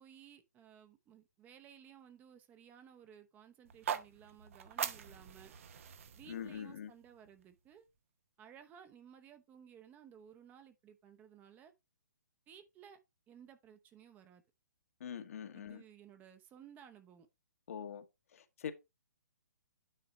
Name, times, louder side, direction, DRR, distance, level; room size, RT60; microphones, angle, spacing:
voice 1, 0.0-5.5 6.1-7.9 8.4-11.7 12.5-13.0 13.3-14.4 15.5-17.3, right 9 dB, 20° right, 0.8 m, -57 dB
sound 1, 3.6-7.8, right 8 dB, 50° right, 0.9 m, -43 dB
voice 2, 6.3-6.9 15.0-15.8 17.7-18.0 18.3-18.7, left 8 dB, 55° left, 1.2 m, -43 dB
9.3 x 3.9 x 4.2 m
figure-of-eight pair, 130°, 9 cm